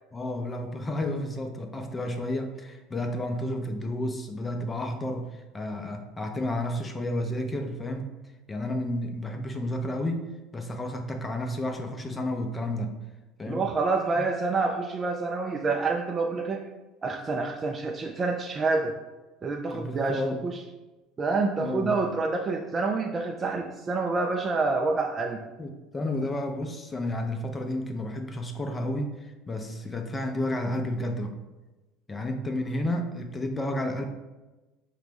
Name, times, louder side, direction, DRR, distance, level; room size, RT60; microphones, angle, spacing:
voice 1, 0.1-8.1 8.5-12.9 13.4-13.7 14.2-14.3 19.7-20.4 21.6-21.9 25.6-31.4 32.1-34.1, left 1 dB, 20° left, 4 dB, 0.6 m, -31 dB
voice 2, 13.5-16.6 17.0-18.9 19.4-20.6 21.2-25.4, right 3 dB, 30° right, 2 dB, 0.3 m, -27 dB
4.8 x 2.2 x 3.4 m, 1.1 s
hypercardioid pair, 70°, 0 cm